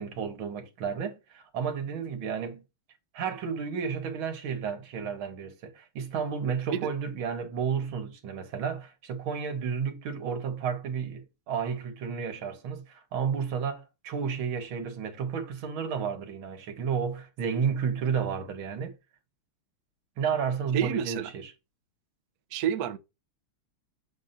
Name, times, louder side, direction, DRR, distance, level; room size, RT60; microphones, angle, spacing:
voice 1, 0.0-2.6 3.1-18.9 20.2-21.5, right 6 dB, 85° right, 2.0 m, -32 dB
voice 2, 20.7-21.3 22.5-23.0, right 9 dB, 65° right, 1.0 m, -29 dB
7.0 x 2.6 x 5.5 m
omnidirectional pair, 2.2 m